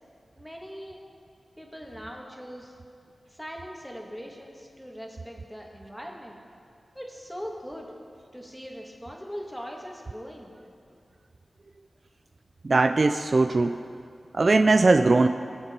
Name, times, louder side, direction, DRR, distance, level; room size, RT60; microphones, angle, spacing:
voice 1, 0.4-1.0 1.6-2.8 3.3-6.4 7.0-7.9 8.3-10.5, equal, 5° left, 0 dB, 2.0 m, -40 dB
voice 2, 12.6-13.8 14.3-15.3, right 3 dB, 50° right, 9 dB, 0.4 m, -20 dB
21.0 x 7.6 x 4.5 m, 2.4 s
wide cardioid pair, 75°, 0 cm